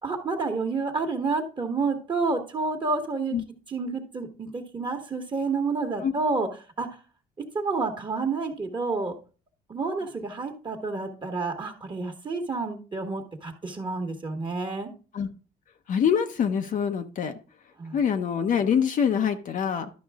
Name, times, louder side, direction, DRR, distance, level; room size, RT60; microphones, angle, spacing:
voice 1, 0.0-3.3 3.7-6.5 6.8-6.9 7.5-9.1 9.7-14.9 17.8-18.0, right 4 dB, 30° right, 3 dB, 1.4 m, -29 dB
voice 2, 15.9-17.3 17.9-19.9, left 7 dB, 50° left, 7 dB, 0.8 m, -25 dB
11.5 x 5.3 x 3.5 m, 0.35 s
cardioid pair, 110°, 17 cm